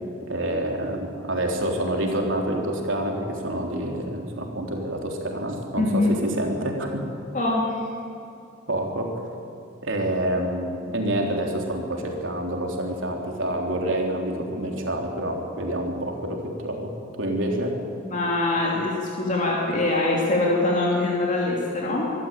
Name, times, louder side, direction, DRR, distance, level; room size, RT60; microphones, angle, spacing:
voice 1, 0.3-7.0 8.7-9.1 9.8-16.9 17.2-17.7, right 1 dB, 75° right, 1 dB, 3.5 m, -27 dB
voice 2, 5.8-6.1 7.3-7.7 18.1-22.1, left 2 dB, 40° left, -3 dB, 2.9 m, -23 dB
24.0 x 13.5 x 9.1 m, 2.6 s
head